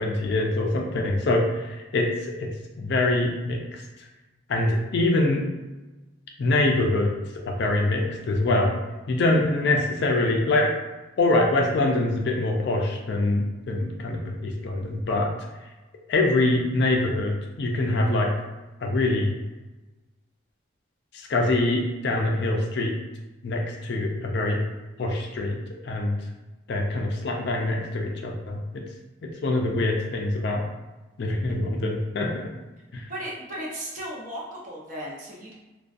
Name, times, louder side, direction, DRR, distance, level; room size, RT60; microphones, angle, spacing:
voice 1, 0.0-2.5 2.8-3.8 4.5-5.4 6.4-7.1 7.5-8.7 9.1-10.7 11.2-15.3 16.1-18.3 18.8-19.3 21.1-22.9 23.4-24.6 25.0-25.6 25.8-26.2 26.7-28.8 29.2-30.6 31.2-32.5 32.9-33.1, left 2 dB, 55° left, 1 dB, 0.3 m, -24 dB
voice 2, 33.1-35.5, equal, 40° right, -5 dB, 0.6 m, -35 dB
2.5 x 2.2 x 2.4 m, 1.1 s
head